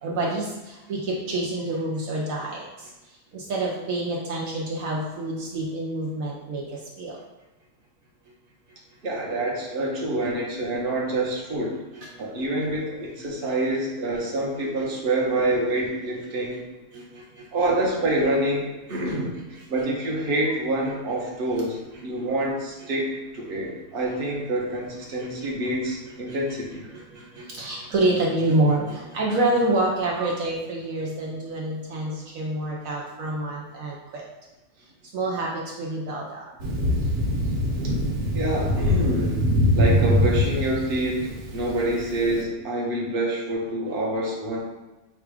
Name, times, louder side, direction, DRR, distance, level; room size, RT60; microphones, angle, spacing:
voice 1, 0.0-2.9 3.3-7.2 12.0-12.1 12.4-12.5 16.9-17.5 18.9-19.2 19.5-19.6 21.9-22.0 25.2-25.5 26.3-26.4 26.9-34.2 35.1-36.4, right 2 dB, 70° right, -3 dB, 1.1 m, -27 dB
voice 2, 9.0-11.8 12.2-16.6 17.5-19.3 19.7-26.9 38.3-39.4 39.7-44.6, right 1 dB, 45° right, -3 dB, 1.0 m, -27 dB
Thunder, 36.6-42.3, left 1 dB, 85° right, 1.3 m, -23 dB
4.4 x 2.4 x 4.8 m, 1.1 s
omnidirectional pair, 1.6 m